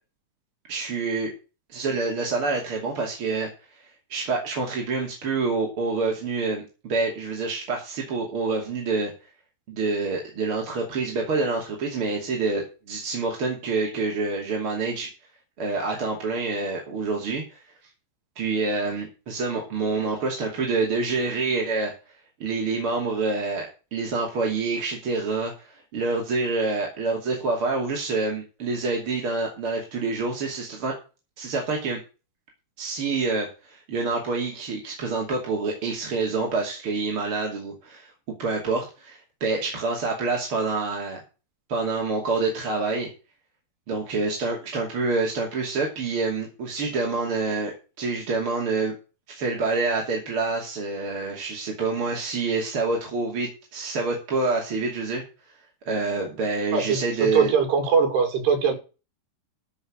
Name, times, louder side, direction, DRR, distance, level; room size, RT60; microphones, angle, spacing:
voice 1, 0.7-1.3 1.7-3.8 4.1-9.1 9.7-15.1 15.6-17.6 18.4-21.9 22.4-30.9 31.4-32.0 32.8-41.2 41.7-43.1 43.9-49.0 49.3-55.2 55.9-57.5, right 3 dB, 35° right, 2.9 m, -27 dB
voice 2, 56.7-57.0 57.3-58.7, right 6 dB, 75° right, 4.6 m, -21 dB
14.0 x 6.3 x 6.3 m
omnidirectional pair, 4.8 m